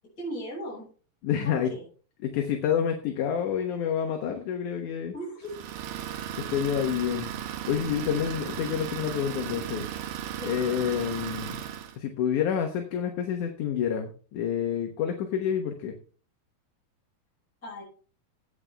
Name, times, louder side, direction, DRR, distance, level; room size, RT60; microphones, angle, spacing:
voice 1, 0.2-0.9 1.4-1.8 5.1-5.5 10.4-10.5 17.6-17.8, equal, 25° left, -7 dB, 5.9 m, -37 dB
voice 2, 1.2-1.7 2.2-5.1 6.4-7.3 7.7-9.9 10.4-11.6 11.9-16.0, left 8 dB, 65° left, 4 dB, 2.3 m, -28 dB
Idling, 5.4-12.0, right 10 dB, 70° right, 2.4 m, -36 dB
16.0 x 8.9 x 3.4 m, 0.38 s
omnidirectional pair, 4.3 m